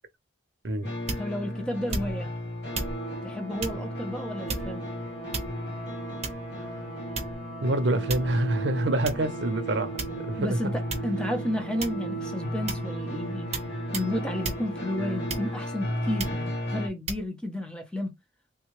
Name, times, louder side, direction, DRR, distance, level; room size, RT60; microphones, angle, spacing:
sound 1, 0.8-16.9, left 1 dB, 65° left, 1.0 m, -35 dB
sound 2, 1.1-1.4 1.9-2.3 2.7-3.0 3.6-3.8 4.5-4.9 5.3-5.8 6.2-6.5 7.2-7.5 8.1-8.4 9.1-9.2 10.0-10.4 10.9-11.2 11.8-12.1 12.7-12.9 13.5-13.7 13.9-14.1 14.4-14.6 15.3-15.7 16.2-16.4 17.1-17.2, right 3 dB, 35° right, 0.8 m, -33 dB
voice 1, 1.2-2.3 3.2-4.9 10.4-13.5 13.9-18.1, left 1 dB, 5° left, 0.6 m, -32 dB
sound 3, 2.6-16.3, right 5 dB, 30° left, 1.7 m, -39 dB
voice 2, 7.6-10.7, right 1 dB, 75° right, 0.6 m, -27 dB
3.5 x 2.3 x 3.1 m
head